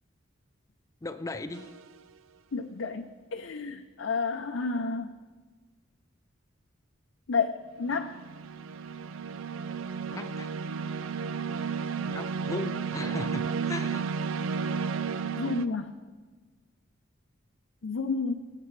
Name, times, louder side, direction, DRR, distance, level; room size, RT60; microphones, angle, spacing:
voice 1, 1.0-1.7 10.1-10.5 12.0-14.0, left 2 dB, 15° left, 10 dB, 0.4 m, -37 dB
sound 1, 1.5-1.9 7.8-15.7, right 5 dB, 90° right, 0.4 m, -33 dB
voice 2, 2.5-5.1 7.3-8.1 15.4-15.9 17.8-18.3, left 4 dB, 70° left, 5 dB, 0.5 m, -30 dB
21.0 x 8.3 x 3.2 m, 1.4 s
head